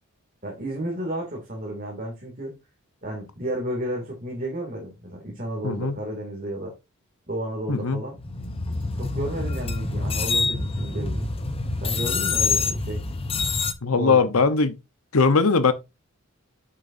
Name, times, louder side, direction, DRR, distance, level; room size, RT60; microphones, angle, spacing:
voice 1, 0.4-2.5 3.0-6.7 7.3-8.2 9.0-11.3 11.8-13.0 13.9-14.2, right 1 dB, 40° right, 2.4 m, -32 dB
voice 2, 5.6-6.0 7.7-8.0 13.8-14.8 15.1-15.7, left 4 dB, 75° left, 0.9 m, -20 dB
sound 1, 8.2-13.7, left 4 dB, 25° left, 0.8 m, -26 dB
8.9 x 6.7 x 2.6 m
head